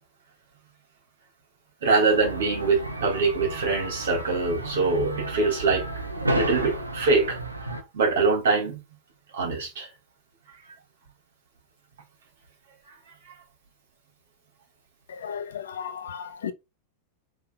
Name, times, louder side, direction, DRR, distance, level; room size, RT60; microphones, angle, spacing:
voice 1, 1.8-5.8 6.1-7.4 7.7-8.8 9.3-9.9, right 4 dB, 60° right, 3.5 m, -24 dB
sound 1, 2.1-7.8, right 1 dB, 80° right, 1.2 m, -32 dB
voice 2, 15.1-16.5, left 8 dB, 65° left, 1.0 m, -35 dB
5.7 x 3.8 x 5.3 m
figure-of-eight pair, 90°, 0 cm